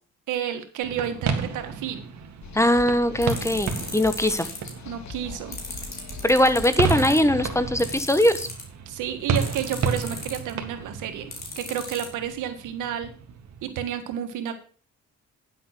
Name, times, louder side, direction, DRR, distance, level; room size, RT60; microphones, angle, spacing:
voice 1, 0.3-2.0 4.8-5.6 8.9-13.1 13.6-14.5, right 9 dB, 85° right, 8 dB, 1.7 m, -31 dB
sound 1, 0.8-13.7, right 5 dB, 65° right, 2.0 m, -32 dB
sound 2, 2.4-8.0, left 5 dB, 65° left, 2.0 m, -42 dB
voice 2, 2.5-4.5 6.2-8.5, left 1 dB, 10° left, 12 dB, 1.1 m, -21 dB
sound 3, 3.2-4.7 5.5-7.2 7.8-8.6 9.4-10.5 11.3-12.1, left 3 dB, 30° left, 4.1 m, -36 dB
10.0 x 7.7 x 5.9 m, 0.41 s
cardioid pair, 90°, 30 cm